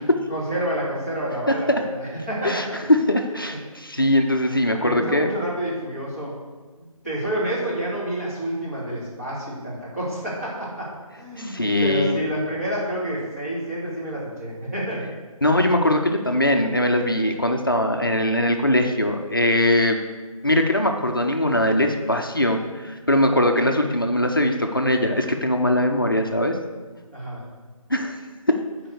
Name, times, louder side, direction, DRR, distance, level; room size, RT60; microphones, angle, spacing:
voice 1, 0.3-2.6 3.5-3.6 4.8-6.3 7.0-10.9 11.1-15.1 27.1-27.4, right 1 dB, 25° right, -9 dB, 2.6 m, -28 dB
voice 2, 2.4-5.3 11.4-12.2 15.4-20.0 20.4-26.6 27.9-28.2 28.5-28.6, left 1 dB, 35° left, 4 dB, 0.6 m, -21 dB
8.7 x 4.7 x 6.6 m, 1.3 s
figure-of-eight pair, 165°, 19 cm